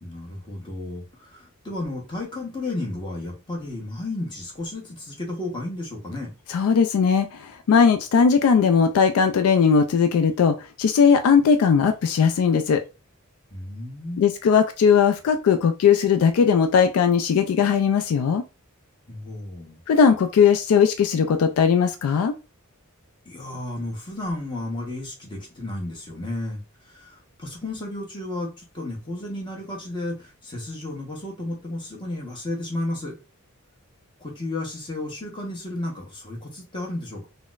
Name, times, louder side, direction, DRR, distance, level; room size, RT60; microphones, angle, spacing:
voice 1, 0.0-6.3 13.5-14.4 19.1-19.8 23.2-26.6 26.9-33.1 34.2-37.3, left 2 dB, 20° left, 1.0 m, -33 dB
voice 2, 6.5-12.8 14.2-18.4 19.9-22.3, left 6 dB, 75° left, 0.3 m, -19 dB
3.9 x 2.1 x 2.4 m
head